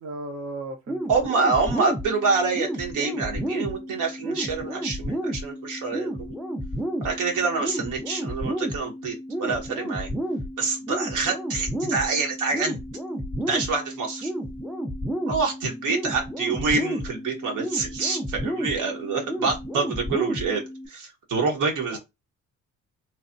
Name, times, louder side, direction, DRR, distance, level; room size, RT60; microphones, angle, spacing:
voice 1, 0.0-1.0 21.9-22.0, right 2 dB, 60° right, 0.7 m, -35 dB
sound 1, 0.9-20.9, equal, ahead, 0.4 m, -32 dB
voice 2, 1.1-6.3 7.0-10.1 10.6-12.8 13.5-14.3 15.3-20.6 20.9-22.0, right 4 dB, 85° right, 1.1 m, -26 dB
3.1 x 2.1 x 2.6 m
cardioid pair, 90°, 30 cm